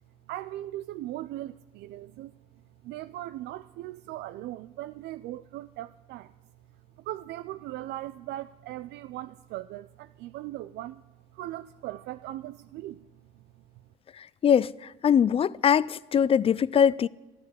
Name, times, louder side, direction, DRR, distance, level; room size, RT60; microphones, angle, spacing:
voice 1, 0.3-2.3 2.8-6.3 7.0-11.0 11.3-13.1 13.3-13.4, right 15 dB, 80° right, 0.4 m, -39 dB
voice 2, 14.2-14.7 15.0-17.1, left 8 dB, 35° left, 0.4 m, -22 dB
14.0 x 9.6 x 9.5 m
cardioid pair, 110°, 17 cm